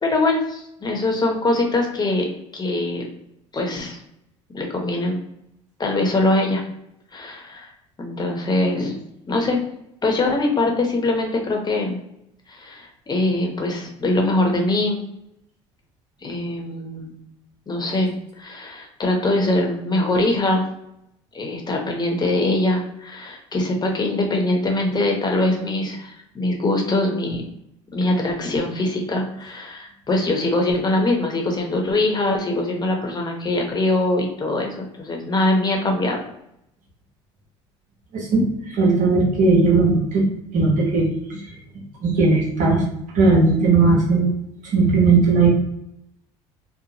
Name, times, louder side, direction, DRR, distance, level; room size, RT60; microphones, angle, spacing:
voice 1, 0.0-3.1 3.5-4.0 4.5-5.2 5.8-6.6 7.1-7.7 8.0-8.9 9.3-9.6 10.0-12.0 12.5-15.0 16.2-17.2 17.7-20.6 21.3-27.4 27.9-36.2, left 2 dB, 25° left, 1 dB, 0.9 m, -22 dB
voice 2, 38.1-40.3 40.5-41.4 42.0-42.8 43.1-44.3 44.6-45.5, right 3 dB, 60° right, -1 dB, 1.1 m, -17 dB
2.8 x 2.1 x 2.8 m, 0.79 s
hypercardioid pair, 70°, 15 cm